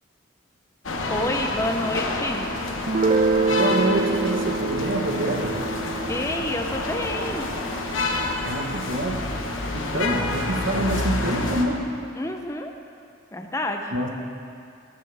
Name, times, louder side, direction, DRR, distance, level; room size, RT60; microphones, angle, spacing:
sound 1, 0.8-11.6, left 2 dB, 85° left, 1.3 m, -28 dB
voice 1, 1.1-2.5 6.1-7.5 12.2-12.7 13.3-13.9, left 1 dB, 15° left, 4 dB, 0.6 m, -28 dB
Guitar, 2.9-8.4, right 3 dB, 35° right, 0.3 m, -26 dB
voice 2, 3.5-5.6 8.4-9.4 9.7-12.0 13.9-14.1, right 1 dB, 80° right, 2 dB, 1.4 m, -26 dB
14.5 x 14.0 x 3.5 m, 2.4 s
head